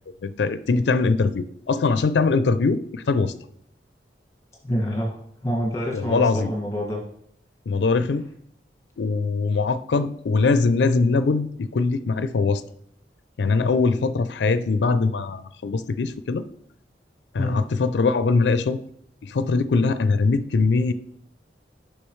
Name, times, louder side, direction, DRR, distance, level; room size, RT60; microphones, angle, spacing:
voice 1, 0.2-3.3 5.9-6.5 7.7-8.3 9.0-12.6 13.4-16.4 17.3-18.8 19.2-20.9, left 4 dB, 80° left, 12 dB, 0.4 m, -22 dB
voice 2, 4.6-7.0 17.4-17.6, equal, 20° left, -1 dB, 1.9 m, -27 dB
8.6 x 5.7 x 3.2 m, 0.69 s
head